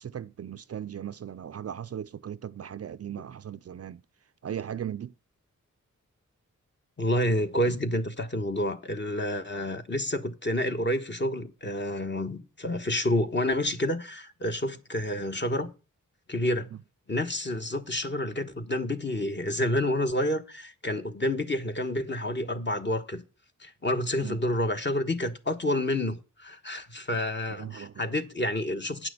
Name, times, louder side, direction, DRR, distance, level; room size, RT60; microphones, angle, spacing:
voice 1, 0.0-4.0 4.4-5.1 24.2-24.4 27.5-28.0, right 9 dB, 50° right, 0.4 m, -37 dB
voice 2, 7.0-15.7 16.3-16.7 17.1-23.2 23.6-29.1, left 1 dB, 35° left, 1.2 m, -29 dB
9.2 x 6.0 x 6.6 m
wide cardioid pair, 75°, 32 cm